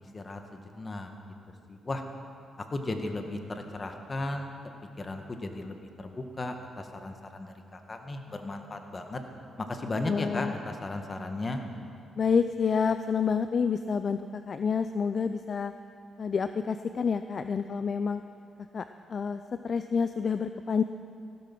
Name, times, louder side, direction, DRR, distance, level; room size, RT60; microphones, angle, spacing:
voice 1, 0.1-1.1 1.7-2.0 2.6-4.5 5.0-9.2 9.6-11.6, left 2 dB, 35° left, 5 dB, 1.9 m, -35 dB
voice 2, 10.0-10.5 12.2-15.7 16.2-18.2 18.7-20.8, left 6 dB, 55° left, 10 dB, 0.5 m, -28 dB
15.5 x 13.0 x 6.2 m, 2.4 s
supercardioid pair, 60°, 0 cm